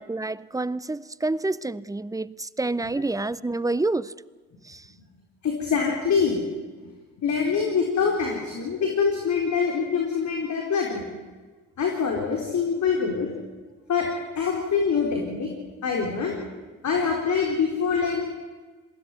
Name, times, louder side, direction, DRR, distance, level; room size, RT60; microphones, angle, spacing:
voice 1, 0.0-4.1 4.6-4.9, right 2 dB, 10° right, 19 dB, 0.7 m, -28 dB
voice 2, 5.4-6.4 7.2-11.0 11.8-13.3 13.9-14.1 14.3-15.5 15.8-16.4 16.8-18.3, left 6 dB, 45° left, 1 dB, 4.2 m, -24 dB
21.0 x 16.5 x 9.5 m, 1.3 s
hypercardioid pair, 60°, 38 cm